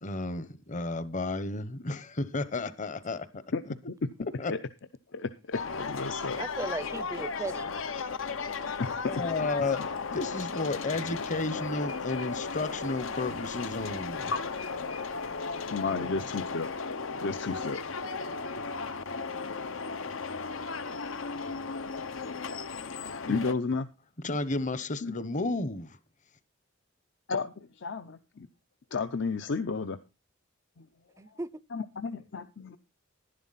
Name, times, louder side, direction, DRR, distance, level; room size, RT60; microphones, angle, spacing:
voice 1, 0.0-3.7 4.4-4.5 9.1-9.8 10.1-14.3 23.3-23.5 24.2-26.0, left 2 dB, 40° left, 0.9 m, -32 dB
voice 2, 5.1-6.4 8.8-9.1 14.3-15.0 15.7-16.7 17.2-17.8 20.2-20.3 23.3-23.9 25.0-25.1 27.3-28.5 28.9-30.0 30.8-30.9 31.7-32.8, left 4 dB, 65° left, 0.6 m, -32 dB
sound 1, 5.5-23.5, left 4 dB, 85° left, 0.9 m, -35 dB
voice 3, 6.4-7.7 15.9-16.3 31.2-31.6, right 2 dB, 15° right, 0.5 m, -37 dB
11.5 x 11.0 x 4.1 m
head